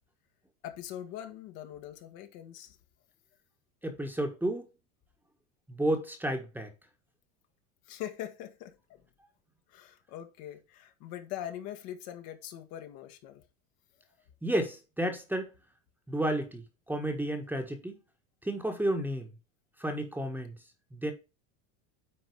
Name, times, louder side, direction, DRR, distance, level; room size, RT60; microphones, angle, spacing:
voice 1, 0.6-2.8 7.9-9.0 9.7-13.4 19.0-19.1, left 11 dB, 60° left, 1.7 m, -42 dB
voice 2, 3.8-4.7 5.7-6.7 14.4-15.5 16.1-18.0 18.4-19.3 19.8-20.6 20.9-21.1, right 1 dB, 5° right, 1.3 m, -31 dB
9.5 x 4.0 x 4.6 m
supercardioid pair, 130°, 40 cm